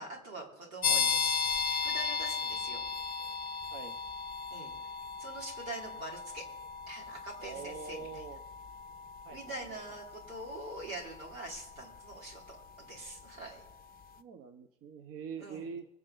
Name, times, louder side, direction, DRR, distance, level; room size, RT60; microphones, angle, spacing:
voice 1, 0.0-2.8 4.5-4.7 5.2-6.4 6.9-8.2 9.3-13.6 15.4-15.7, right 1 dB, 70° right, -2 dB, 5.1 m, -44 dB
sound 1, 0.8-13.3, left 6 dB, 20° left, 0.7 m, -36 dB
voice 2, 7.4-8.4 9.2-9.8 14.2-15.9, right 5 dB, 35° right, 7 dB, 1.1 m, -44 dB
25.0 x 8.7 x 4.0 m, 0.88 s
figure-of-eight pair, 80°, 42 cm